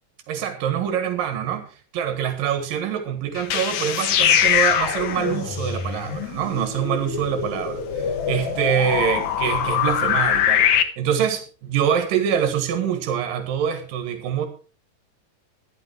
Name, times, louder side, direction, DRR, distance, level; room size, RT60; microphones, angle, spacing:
voice 1, 0.3-1.7 1.9-10.7 11.0-14.5, right 8 dB, 90° right, 7 dB, 3.3 m, -25 dB
sound 1, 3.4-10.8, left 9 dB, 65° left, 2.2 m, -23 dB
13.0 x 11.5 x 4.6 m, 0.36 s
omnidirectional pair, 3.9 m